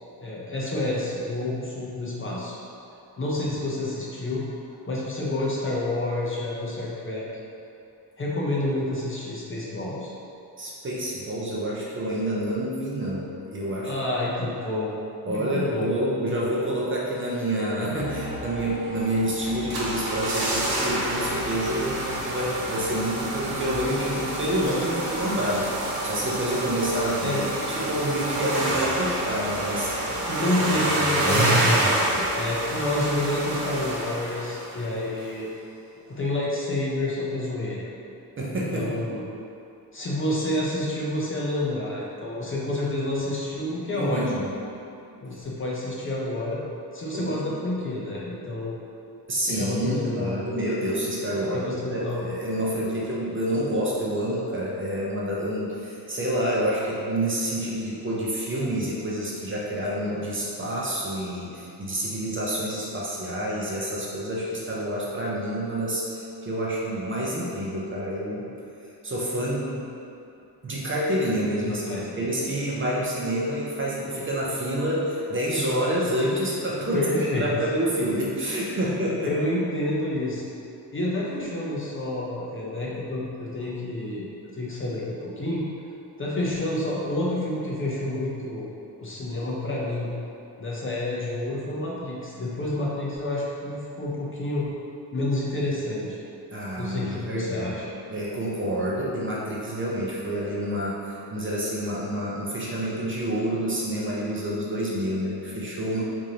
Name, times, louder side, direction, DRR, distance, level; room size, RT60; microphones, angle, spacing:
voice 1, 0.2-2.6 3.2-4.4 4.9-7.3 8.2-10.1 13.8-14.9 15.3-15.9 27.2-27.5 30.3-35.5 36.1-37.9 38.5-39.2 39.9-44.2 45.2-46.6 46.9-48.8 49.5-50.5 51.5-52.2 71.6-72.3 76.9-77.5 78.8-78.9 79.2-80.5 80.9-85.6 86.2-88.7 89.0-90.1 90.6-94.7 95.1-96.2 96.8-97.9, left 1 dB, 30° left, -5 dB, 0.5 m, -29 dB
voice 2, 10.6-13.9 15.2-25.7 26.0-29.9 38.4-39.0 43.9-44.5 47.1-47.4 49.3-68.5 69.0-69.9 70.6-77.1 77.4-79.4 96.5-97.7 98.1-106.0, right 1 dB, 30° right, -5 dB, 0.5 m, -28 dB
sound 1, 17.9-30.5, right 1 dB, 80° left, 0.8 m, -38 dB
sound 2, 19.4-34.9 35.2-35.3, right 1 dB, 60° right, 0.8 m, -27 dB
4.7 x 2.6 x 2.8 m, 2.7 s
wide cardioid pair, 140°, 41 cm